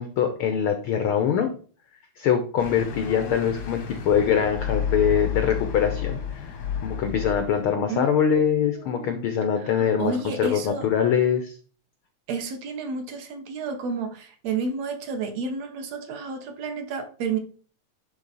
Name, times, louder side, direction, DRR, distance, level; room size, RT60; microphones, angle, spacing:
voice 1, 0.0-1.5 2.2-6.5 6.8-11.6, left 8 dB, 90° left, 7 dB, 1.1 m, -23 dB
sound 1, 2.6-7.7, left 8 dB, 65° left, 0.9 m, -31 dB
voice 2, 7.9-9.2 9.6-10.9 12.3-17.4, right 4 dB, 65° right, 6 dB, 2.0 m, -31 dB
10.5 x 4.0 x 4.0 m, 0.42 s
omnidirectional pair, 3.4 m